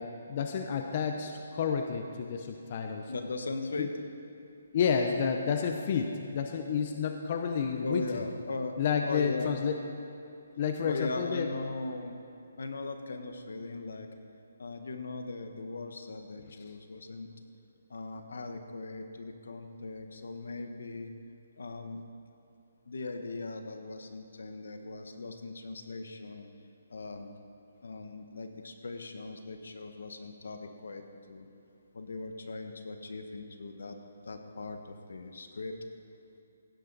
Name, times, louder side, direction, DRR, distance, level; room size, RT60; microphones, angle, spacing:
voice 1, 0.0-3.1 3.8-3.9 4.7-8.2 8.8-9.8 10.6-11.5, left 6 dB, 40° left, 4 dB, 0.8 m, -30 dB
voice 2, 3.1-3.9 7.8-8.8 9.0-9.6 10.8-12.2 12.6-14.1 14.6-17.3 17.9-21.1 21.6-22.0 22.9-26.5 26.9-27.3 27.8-31.0 31.3-31.5 31.9-34.0 34.2-35.7, left 3 dB, 80° left, 6 dB, 1.3 m, -39 dB
16.0 x 11.5 x 4.1 m, 2.7 s
hypercardioid pair, 165°, 0 cm